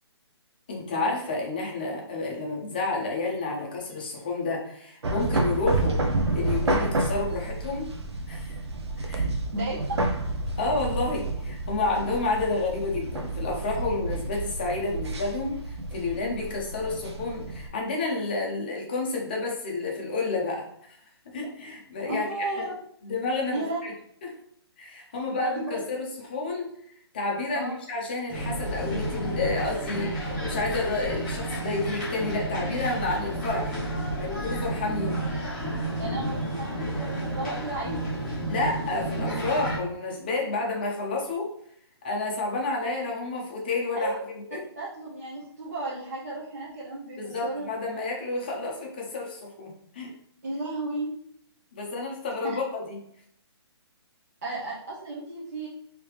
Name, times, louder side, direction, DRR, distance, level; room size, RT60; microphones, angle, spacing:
voice 1, 0.7-6.0 6.3-7.9 8.3-8.6 9.0-9.3 10.6-21.0 21.3-22.6 23.0-23.9 24.2-24.3 24.8-26.7 27.1-33.8 34.2-35.5 38.5-41.5 42.0-44.1 44.5-44.6 47.2-50.1 51.7-53.0, left 3 dB, 20° left, -1 dB, 0.6 m, -30 dB
sound 1, 5.0-17.7, right 2 dB, 75° right, 0.6 m, -30 dB
voice 2, 22.1-22.7 23.5-23.8 25.1-25.8 27.5-27.7 36.0-38.1 43.9-44.2 44.8-47.7 50.4-51.1 52.4-52.6 54.4-55.7, right 2 dB, 40° right, -6 dB, 0.7 m, -33 dB
sound 2, 28.3-39.8, right 1 dB, ahead, 1.1 m, -31 dB
3.2 x 2.8 x 3.2 m, 0.67 s
hypercardioid pair, 175°, 14 cm